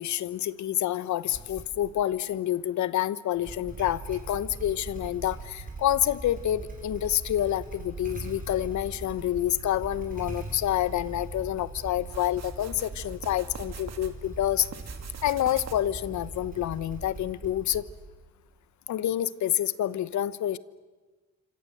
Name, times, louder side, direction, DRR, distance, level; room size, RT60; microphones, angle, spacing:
voice 1, 0.0-14.7 15.2-17.8 18.9-20.6, left 12 dB, 70° left, 17 dB, 1.0 m, -28 dB
Motorcycle / Engine starting, 1.3-2.0 3.3-18.2, right 3 dB, 30° right, 6.5 m, -41 dB
sound 1, 12.1-14.1 14.5-16.0, right 7 dB, 60° right, 2.6 m, -44 dB
26.0 x 26.0 x 7.9 m, 1.3 s
cardioid pair, 90°, 30 cm